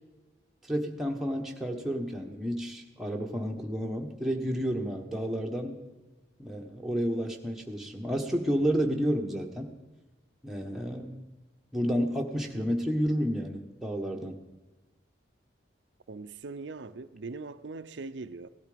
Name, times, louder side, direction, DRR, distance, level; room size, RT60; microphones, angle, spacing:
voice 1, 0.7-5.8 6.4-9.7 10.4-11.2 11.7-14.4, equal, ahead, 1.3 m, -31 dB
voice 2, 16.1-18.5, right 3 dB, 70° right, 0.6 m, -41 dB
17.5 x 12.5 x 5.2 m
head